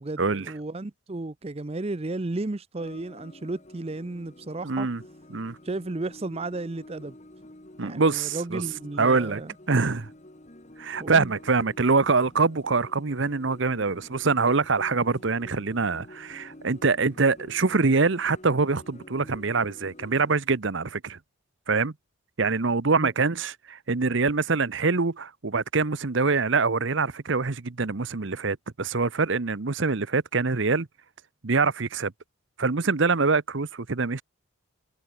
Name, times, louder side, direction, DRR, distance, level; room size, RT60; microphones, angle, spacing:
voice 1, 0.0-4.9 5.6-7.2 7.8-9.5 11.0-11.4 23.0-23.1, right 2 dB, 30° right, 0.6 m, -33 dB
sound 1, 2.8-20.4, left 1 dB, 30° left, 1.7 m, -49 dB
voice 2, 4.6-5.0 5.3-5.6 7.8-8.6 9.0-9.4 9.7-10.1 10.8-21.2 21.7-21.9 22.4-30.9 31.4-32.1 32.6-34.2, right 4 dB, 60° right, 0.9 m, -24 dB
head